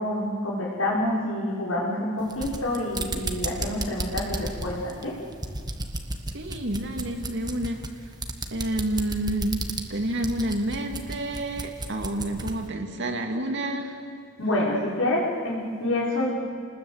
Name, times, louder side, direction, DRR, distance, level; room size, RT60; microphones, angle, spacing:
voice 1, 0.0-5.2 14.4-16.3, left 1 dB, 85° left, -3 dB, 6.0 m, -27 dB
sound 1, 2.2-12.6, right 2 dB, 20° right, 1.6 m, -34 dB
voice 2, 6.3-7.8 8.5-9.6 9.9-14.0, right 1 dB, 60° right, 4 dB, 2.6 m, -29 dB
30.0 x 20.5 x 8.3 m, 2.2 s
head